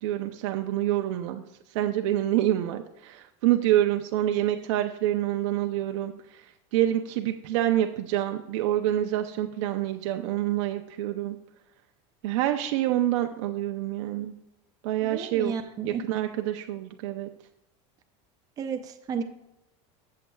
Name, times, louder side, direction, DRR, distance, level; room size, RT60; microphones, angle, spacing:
voice 1, 0.0-1.4 1.7-6.4 6.7-11.4 12.2-14.3 14.8-15.5 15.8-17.3, right 13 dB, 80° right, 5 dB, 0.6 m, -27 dB
voice 2, 15.0-16.0 18.6-19.2, right 6 dB, 25° right, 6 dB, 0.5 m, -32 dB
14.5 x 7.6 x 2.3 m, 0.88 s
supercardioid pair, 155°, 15 cm